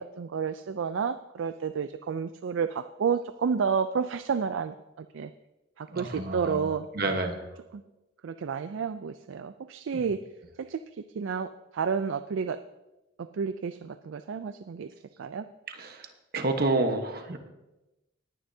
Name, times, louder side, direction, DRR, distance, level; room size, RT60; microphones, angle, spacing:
voice 1, 0.0-5.3 5.8-7.2 8.2-10.2 10.6-10.8 11.2-12.6 13.2-14.9 15.2-15.5, right 6 dB, 75° right, 11 dB, 0.4 m, -31 dB
voice 2, 5.9-7.5 9.9-10.0 15.7-16.1 16.3-17.4, right 2 dB, 50° right, 6 dB, 1.2 m, -29 dB
18.5 x 10.0 x 2.7 m, 1.0 s
head